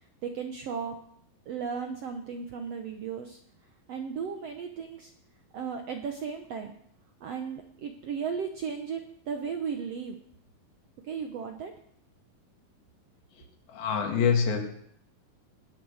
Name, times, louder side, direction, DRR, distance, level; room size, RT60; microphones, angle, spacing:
voice 1, 0.2-1.0 1.5-3.4 3.9-5.1 5.5-6.7 7.2-9.0 9.3-10.2 11.1-11.7, right 6 dB, 70° right, 5 dB, 1.5 m, -35 dB
voice 2, 13.7-14.6, left 6 dB, 85° left, 3 dB, 3.9 m, -25 dB
19.5 x 8.9 x 6.5 m, 0.70 s
omnidirectional pair, 4.1 m